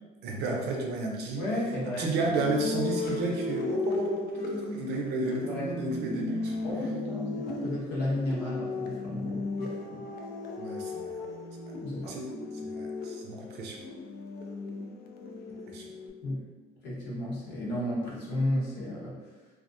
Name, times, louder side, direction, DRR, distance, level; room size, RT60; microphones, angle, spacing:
voice 1, 0.2-1.5 1.9-6.5 10.6-11.2 12.0-12.3 12.6-13.8 15.7-15.8, right 3 dB, 75° right, 0 dB, 0.5 m, -32 dB
voice 2, 1.3-2.1 2.4-2.7 5.4-6.1 6.6-10.1 11.8-12.2 16.2-16.5 16.8-19.3, left 1 dB, 85° left, -5 dB, 0.9 m, -33 dB
sound 1, 2.4-16.1, left 3 dB, 65° left, 0.4 m, -36 dB
2.4 x 2.1 x 2.5 m, 1.3 s
cardioid pair, 110°, 17 cm